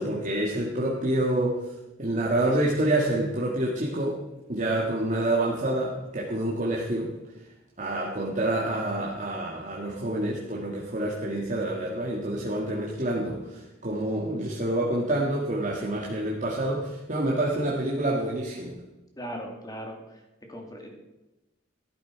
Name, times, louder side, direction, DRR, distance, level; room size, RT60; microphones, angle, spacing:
voice 1, 0.0-1.6 2.0-4.2 4.5-7.1 7.8-18.8, right 1 dB, 40° right, -3 dB, 1.8 m, -27 dB
voice 2, 19.2-19.9 20.5-20.9, equal, 20° left, 2 dB, 2.5 m, -38 dB
13.5 x 11.0 x 4.7 m, 1.0 s
head